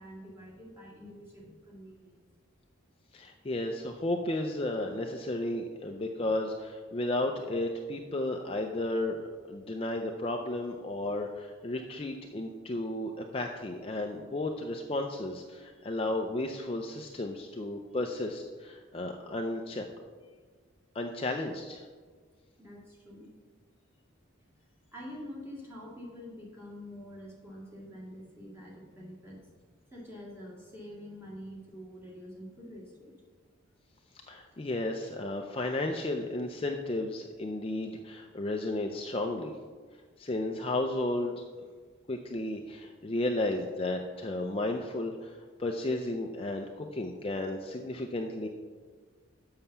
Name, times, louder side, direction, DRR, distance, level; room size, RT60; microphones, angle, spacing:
voice 1, 0.0-2.2 22.6-23.3 24.5-24.6 24.9-29.6 29.9-33.2, equal, 10° right, -4 dB, 2.0 m, -46 dB
voice 2, 3.1-19.9 20.9-21.9 34.3-39.5 40.2-41.4 42.1-48.5, left 2 dB, 25° left, 3 dB, 0.4 m, -33 dB
7.3 x 5.6 x 6.8 m, 1.5 s
head